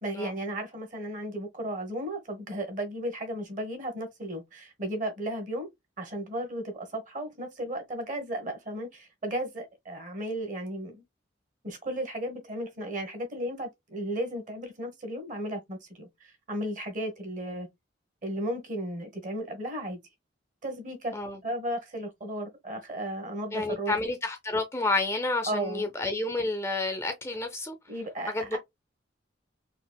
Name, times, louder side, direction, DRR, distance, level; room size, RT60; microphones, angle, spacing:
voice 1, 0.0-5.7 6.0-11.0 11.6-17.7 18.2-20.0 20.6-23.9 25.5-25.9 27.9-28.6, right 1 dB, 40° right, 1.1 m, -34 dB
voice 2, 23.5-27.7 28.3-28.6, left 2 dB, 15° left, 0.4 m, -30 dB
4.0 x 2.4 x 2.2 m
head